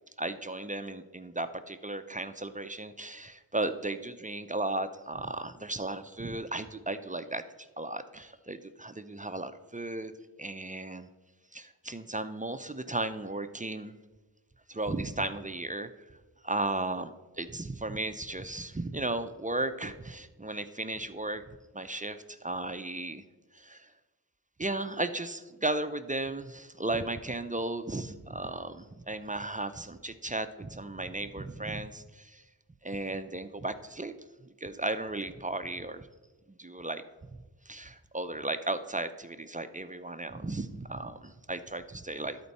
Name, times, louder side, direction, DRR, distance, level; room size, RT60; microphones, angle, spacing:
voice 1, 0.2-10.1 10.4-11.1 11.5-13.9 14.7-15.9 16.4-17.1 17.4-21.4 21.7-23.2 23.5-23.9 24.6-32.4 32.8-34.1 34.6-36.1 36.5-37.0 37.7-42.4, right 2 dB, 20° right, 10 dB, 0.4 m, -35 dB
12.5 x 4.3 x 4.1 m, 1.2 s
wide cardioid pair, 45°, 42 cm